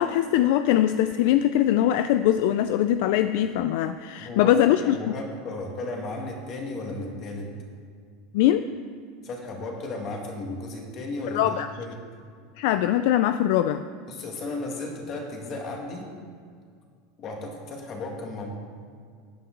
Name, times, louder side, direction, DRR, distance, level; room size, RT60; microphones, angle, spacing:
voice 1, 0.0-5.1 8.3-8.7 11.3-11.7 12.6-13.8, left 12 dB, 65° left, 11 dB, 0.4 m, -22 dB
voice 2, 4.2-4.5 4.8-7.5 9.2-12.0 14.1-16.1 17.2-18.5, left 2 dB, 35° left, 1 dB, 2.0 m, -34 dB
14.0 x 9.1 x 3.9 m, 2.1 s
supercardioid pair, 150°, 0 cm